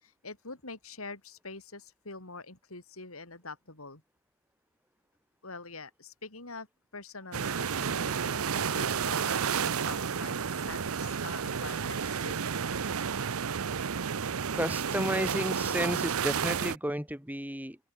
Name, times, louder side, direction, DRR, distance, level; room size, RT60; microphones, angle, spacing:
voice 1, 0.0-4.0 5.4-6.7 6.9-12.4, left 3 dB, 85° left, 5.6 m, -45 dB
sound 1, 7.3-16.8, right 6 dB, 90° right, 0.7 m, -31 dB
voice 2, 14.5-17.8, right 1 dB, 10° right, 4.5 m, -32 dB
head